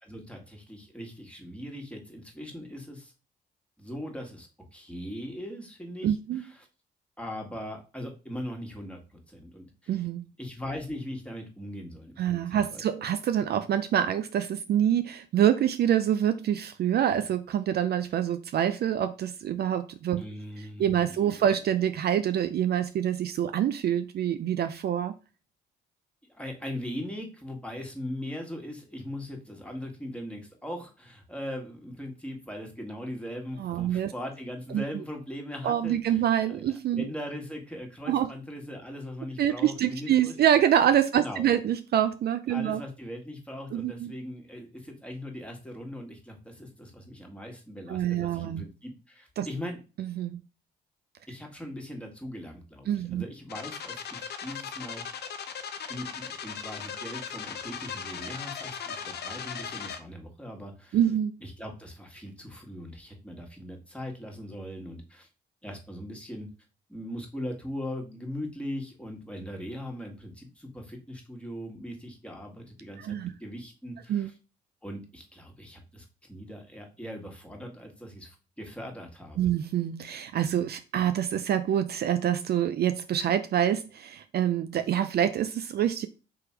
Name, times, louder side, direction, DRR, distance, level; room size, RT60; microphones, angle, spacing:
voice 1, 0.0-3.1 3.8-6.7 7.2-10.1 10.4-13.0 20.2-21.4 26.3-40.3 41.1-41.5 42.5-49.8 51.3-55.0 55.9-61.0 61.4-65.3 65.6-66.5 66.9-74.3 74.8-79.5, left 1 dB, 5° left, 1 dB, 1.7 m, -40 dB
voice 2, 6.0-6.4 9.9-10.3 12.2-20.2 20.8-25.1 33.6-34.1 34.7-34.8 35.6-37.1 38.1-38.3 39.4-42.8 43.7-44.1 47.9-48.6 49.4-49.5 50.0-50.4 52.9-53.2 60.9-61.3 73.0-73.3 74.1-74.3 79.4-86.1, right 10 dB, 60° right, 10 dB, 0.4 m, -26 dB
sound 1, 53.5-60.0, left 7 dB, 60° left, 0.6 m, -38 dB
3.5 x 3.0 x 4.5 m, 0.33 s
supercardioid pair, 50°, 19 cm